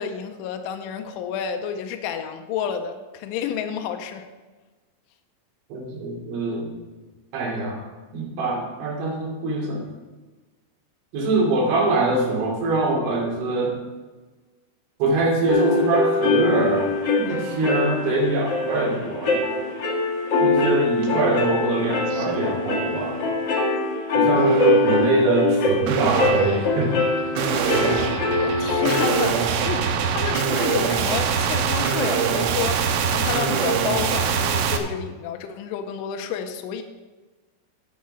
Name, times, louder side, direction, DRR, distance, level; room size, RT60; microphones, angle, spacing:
voice 1, 0.0-4.3 28.4-32.8 33.1-36.8, left 8 dB, 85° left, 6 dB, 3.3 m, -30 dB
voice 2, 5.7-6.7 7.3-7.9 8.1-9.9 11.1-13.8 15.0-19.7 20.4-23.2 24.1-27.0, right 2 dB, 75° right, -1 dB, 5.0 m, -23 dB
sound 1, 15.5-29.3, left 2 dB, 45° left, 2.2 m, -23 dB
sound 2, 21.0-21.2 21.6-22.4 22.9-23.3 24.4-25.0 25.9-34.8, right 6 dB, 90° right, 3.5 m, -24 dB
10.5 x 9.6 x 5.4 m, 1.3 s
omnidirectional pair, 5.5 m